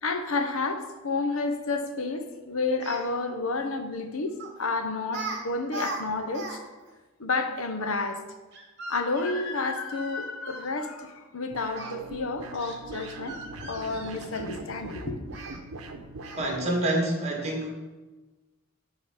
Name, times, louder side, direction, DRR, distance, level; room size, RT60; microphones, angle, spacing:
voice 1, 0.0-6.6 7.2-8.2 8.9-13.4 13.7-15.2, left 3 dB, 70° left, 7 dB, 0.8 m, -30 dB
Speech, 2.8-3.1 4.4-4.6 5.1-5.4 5.7-6.6 6.9-7.0 8.5-10.7 11.7-11.9 12.5-14.7 15.3-15.6 16.2-16.6, right 3 dB, 55° right, 1.3 m, -39 dB
sound 1, 11.5-16.8, right 2 dB, 85° right, 0.8 m, -42 dB
voice 2, 16.4-17.7, right 1 dB, 30° right, 0 dB, 1.6 m, -27 dB
10.5 x 3.8 x 5.0 m, 1.2 s
head